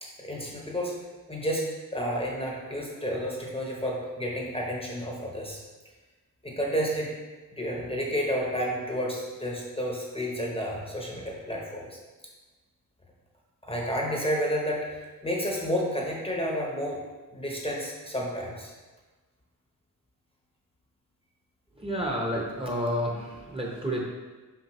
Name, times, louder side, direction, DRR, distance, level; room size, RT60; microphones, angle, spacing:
voice 1, 0.0-0.9 1.3-5.6 6.4-7.1 7.5-12.0 13.6-17.0 17.3-18.7, equal, 15° left, -2 dB, 0.8 m, -31 dB
voice 2, 21.8-24.0, equal, 15° right, -2 dB, 0.8 m, -30 dB
6.0 x 5.2 x 3.0 m, 1.3 s
wide cardioid pair, 145°, 35 cm